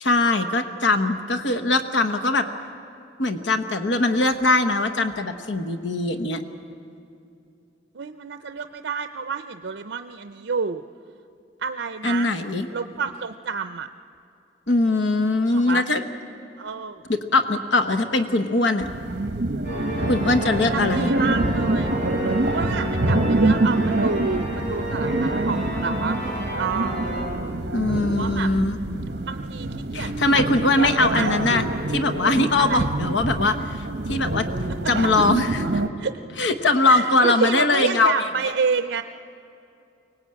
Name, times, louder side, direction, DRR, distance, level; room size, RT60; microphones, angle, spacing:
voice 1, 0.0-2.5 3.2-6.4 12.0-12.7 14.7-16.0 17.3-18.9 20.1-21.1 27.7-28.8 29.9-33.6 34.1-34.4 34.9-35.6 36.4-38.5, left 2 dB, 80° left, 9 dB, 1.1 m, -21 dB
voice 2, 7.9-10.8 11.6-12.3 12.7-13.9 15.4-15.8 16.6-17.0 20.7-21.9 22.5-27.1 28.1-28.5 29.3-30.4 30.8-31.4 32.6-32.9 36.0-36.2 36.9-39.0, right 5 dB, 80° right, 9 dB, 0.6 m, -29 dB
sound 1, 18.8-35.9, right 2 dB, 65° right, 1.0 m, -26 dB
sound 2, 19.6-27.2, equal, 45° left, 6.8 m, -31 dB
23.5 x 18.5 x 8.7 m, 2.6 s
head